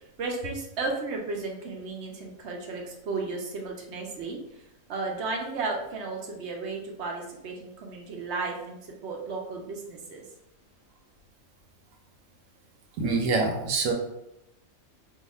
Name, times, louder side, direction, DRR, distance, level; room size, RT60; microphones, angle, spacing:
voice 1, 0.0-4.6 4.9-10.2, right 3 dB, 60° right, 0 dB, 0.9 m, -34 dB
voice 2, 13.0-13.9, right 3 dB, 85° right, 0 dB, 1.0 m, -25 dB
2.7 x 2.4 x 4.1 m, 0.84 s
omnidirectional pair, 1.4 m